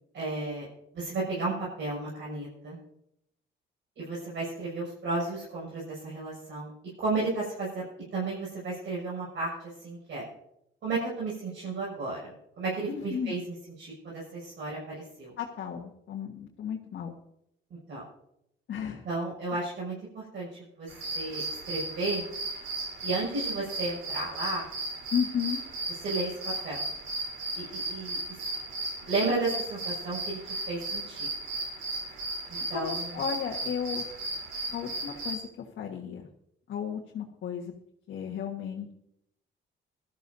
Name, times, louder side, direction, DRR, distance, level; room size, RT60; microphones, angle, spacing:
voice 1, 0.1-0.7 0.9-2.8 4.0-6.7 7.0-7.8 8.1-10.2 10.8-13.4 13.8-15.3 17.7-18.0 19.0-20.5 20.8-20.9 21.1-22.2 23.0-24.7 26.0-26.9 27.5-28.2 29.1-30.4 30.7-31.3 32.5-33.1, right 3 dB, 70° right, -5 dB, 6.2 m, -33 dB
voice 2, 12.9-13.3 15.4-17.1 18.7-19.1 25.1-25.6 32.7-34.0 34.7-36.3 36.7-37.7 38.1-38.9, left 8 dB, 65° left, -2 dB, 1.5 m, -34 dB
sound 1, 20.9-35.3, right 2 dB, 85° right, 3.8 m, -35 dB
20.0 x 13.0 x 2.7 m, 0.77 s
cardioid pair, 90°, 20 cm